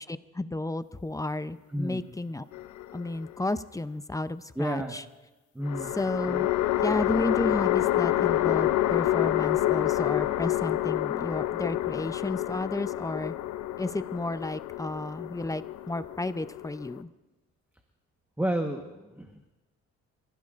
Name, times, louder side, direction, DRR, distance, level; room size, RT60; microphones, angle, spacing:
voice 1, 0.1-2.4 2.9-5.0 5.9-6.5 6.8-13.3 13.8-17.1, left 2 dB, 10° left, 13 dB, 0.6 m, -32 dB
sound 1, 2.5-3.4 5.6-17.0, left 14 dB, 70° left, 0.7 m, -28 dB
voice 2, 4.6-5.0 5.5-5.9 18.4-19.5, equal, 5° right, 3 dB, 1.2 m, -30 dB
26.5 x 15.5 x 2.5 m, 1.1 s
cardioid pair, 90°, 30 cm